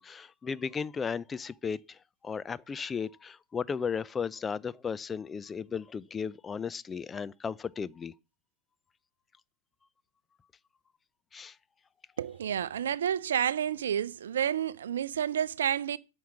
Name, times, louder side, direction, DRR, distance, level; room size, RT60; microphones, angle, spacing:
voice 1, 0.0-8.1 11.3-11.6, left 6 dB, 20° left, 0.5 m, -35 dB
voice 2, 12.2-16.0, right 9 dB, 75° right, 0.5 m, -30 dB
9.3 x 6.3 x 8.4 m
hypercardioid pair, 95°, 0 cm